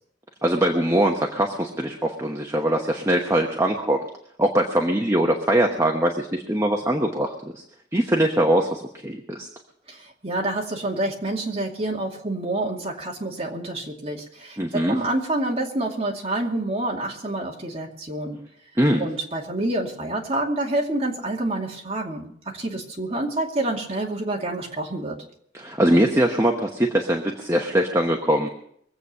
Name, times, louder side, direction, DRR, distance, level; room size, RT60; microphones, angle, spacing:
voice 1, 0.4-4.0 4.4-7.6 7.9-9.5 14.6-15.0 18.8-19.1 25.5-28.5, right 1 dB, 15° right, 1 dB, 1.0 m, -22 dB
voice 2, 9.9-18.4 19.0-25.2, right 2 dB, 30° right, -1 dB, 2.5 m, -28 dB
23.0 x 8.1 x 5.6 m, 0.68 s
head